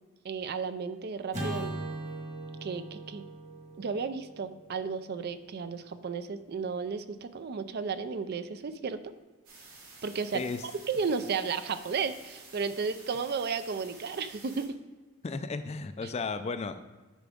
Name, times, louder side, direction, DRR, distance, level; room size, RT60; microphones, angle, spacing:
voice 1, 0.2-1.8 2.6-3.2 3.8-9.0 10.0-14.7 16.0-16.1, right 5 dB, 50° right, 12 dB, 0.4 m, -33 dB
Acoustic guitar / Strum, 1.3-5.8, right 1 dB, 35° right, 1.4 m, -40 dB
sound 1, 9.4-14.7, right 3 dB, 80° right, 2.4 m, -51 dB
voice 2, 15.2-16.8, left 4 dB, 30° left, 11 dB, 0.3 m, -34 dB
10.0 x 4.9 x 3.6 m, 1.3 s
head